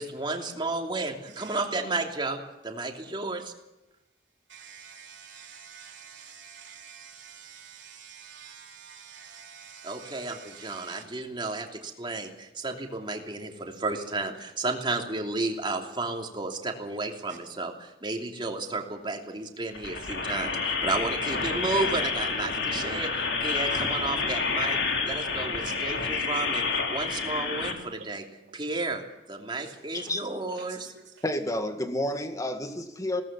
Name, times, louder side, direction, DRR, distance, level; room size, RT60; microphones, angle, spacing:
voice 1, 0.0-3.5 9.8-24.8 25.0-28.2 28.5-29.0 29.3-30.9, right 3 dB, 25° right, 2 dB, 3.0 m, -32 dB
voice 2, 1.3-1.6 4.5-11.0 17.3-17.4 23.7-23.9 25.6-26.0 28.4-28.6 29.6-29.7 30.6-31.2, right 7 dB, 75° right, 1 dB, 4.1 m, -48 dB
sound 1, 19.7-27.7, left 4 dB, 65° left, 3.5 m, -29 dB
voice 3, 31.2-33.2, left 1 dB, 20° left, 7 dB, 2.0 m, -30 dB
21.0 x 18.5 x 7.5 m, 0.94 s
head